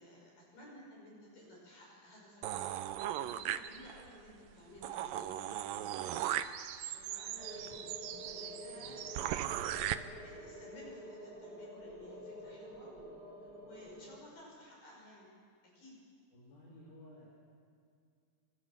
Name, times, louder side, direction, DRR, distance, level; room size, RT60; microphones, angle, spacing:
voice 1, 0.0-2.4 2.7-6.3 6.9-7.8 8.2-13.1 13.4-15.3 15.7-16.0, left 1 dB, 65° left, -2 dB, 7.7 m, -56 dB
sound 1, 2.4-4.1 4.5-4.6 4.8-9.9, right 12 dB, 75° right, 2.4 m, -38 dB
sound 2, 7.4-14.2, equal, 30° right, 3.6 m, -49 dB
voice 2, 8.8-9.1 16.3-17.3, left 1 dB, 85° left, -5 dB, 7.0 m, -56 dB
27.5 x 26.0 x 7.4 m, 2.2 s
omnidirectional pair, 4.2 m